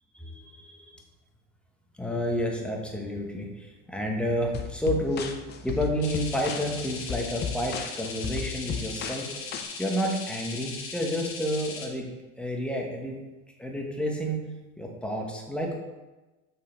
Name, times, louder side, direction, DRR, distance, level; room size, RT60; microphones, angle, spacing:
voice 1, 0.2-1.0 2.0-5.3 5.6-9.3 9.8-12.1 12.4-13.2 13.6-15.8, equal, 5° left, 0 dB, 1.0 m, -30 dB
sound 1, 4.5-9.6, left 7 dB, 30° left, 0.6 m, -35 dB
sound 2, 6.0-11.9, left 4 dB, 60° left, 1.6 m, -39 dB
6.6 x 5.7 x 4.3 m, 1.1 s
supercardioid pair, 140°, 36 cm